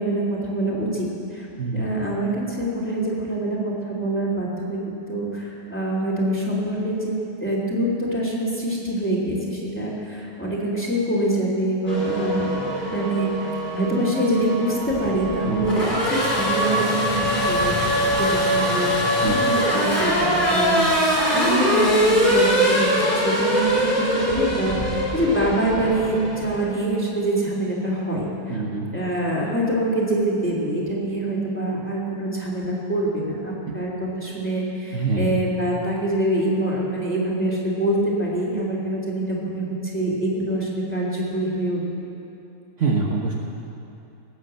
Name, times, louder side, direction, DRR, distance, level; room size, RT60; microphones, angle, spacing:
voice 1, 0.0-1.5 1.7-4.8 5.1-18.9 19.1-22.9 23.2-28.6 28.9-42.1, right 1 dB, 5° left, -4 dB, 3.0 m, -25 dB
Race car auto racing / Accelerating revving vroom, 11.9-26.7, equal, 30° left, 4.4 m, -22 dB
voice 2, 28.5-28.9 33.7-33.8 34.9-35.4 42.8-43.3, right 4 dB, 55° right, -1 dB, 1.5 m, -25 dB
18.5 x 9.4 x 7.7 m, 2.8 s
omnidirectional pair, 1.7 m